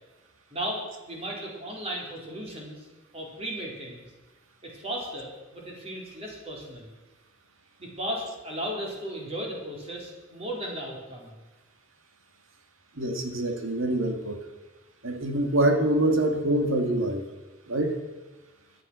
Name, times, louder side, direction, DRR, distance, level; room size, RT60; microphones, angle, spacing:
voice 1, 0.5-2.9 3.1-4.0 4.6-6.9 7.8-11.3, equal, 30° right, -1 dB, 4.2 m, -35 dB
voice 2, 13.0-14.4 15.0-17.3 17.7-18.0, right 1 dB, 80° right, 5 dB, 2.1 m, -25 dB
17.5 x 11.5 x 6.3 m, 1.1 s
head